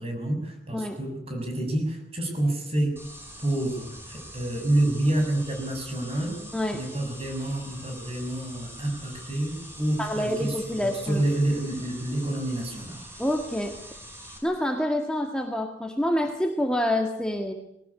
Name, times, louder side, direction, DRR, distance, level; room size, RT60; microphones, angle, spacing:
voice 1, 0.0-3.0 3.4-6.4 6.7-13.0, right 1 dB, 35° right, 3 dB, 6.6 m, -28 dB
sound 1, 3.0-14.4, equal, 15° right, 6.2 m, -44 dB
voice 2, 10.0-11.2 13.2-13.8 14.4-17.5, left 1 dB, 5° left, 3 dB, 1.8 m, -27 dB
21.0 x 18.0 x 9.8 m, 0.77 s
head